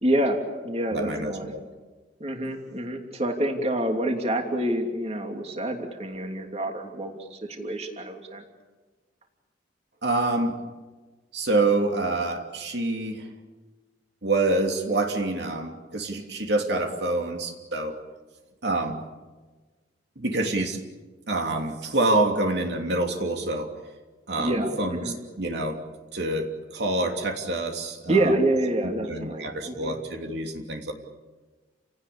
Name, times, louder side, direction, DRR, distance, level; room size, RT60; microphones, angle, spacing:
voice 1, 0.0-1.5 2.2-8.4 24.4-25.2 28.1-29.9, right 1 dB, 35° right, 3 dB, 3.0 m, -27 dB
voice 2, 0.9-1.6 10.0-10.6 11.3-13.3 14.2-18.0 18.6-19.1 20.2-20.8 21.3-23.7 24.3-25.8 26.1-28.3 29.1-30.9, right 2 dB, 65° right, 3 dB, 3.0 m, -27 dB
30.0 x 18.0 x 8.8 m, 1.3 s
head